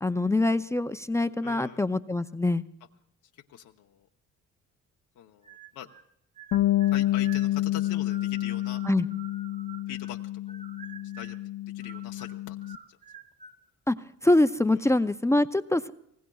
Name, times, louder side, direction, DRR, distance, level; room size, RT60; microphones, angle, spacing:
voice 1, 0.0-2.6 8.9-9.1 13.9-14.0 14.2-15.9, left 2 dB, 10° left, 11 dB, 0.5 m, -24 dB
voice 2, 1.4-1.8 3.3-4.1 5.2-5.9 6.9-8.8 9.9-10.2 10.5-10.6 11.1-11.4 11.7-13.0 14.8-15.0, left 10 dB, 90° left, 2 dB, 0.8 m, -43 dB
sound 1, 5.4-6.1 6.4-10.2 10.5-11.5 11.8-13.6, right 6 dB, 25° right, 1.0 m, -49 dB
Bass guitar, 6.5-12.8, left 15 dB, 55° left, 0.6 m, -29 dB
25.5 x 19.0 x 2.3 m, 0.77 s
cardioid pair, 90°, 30 cm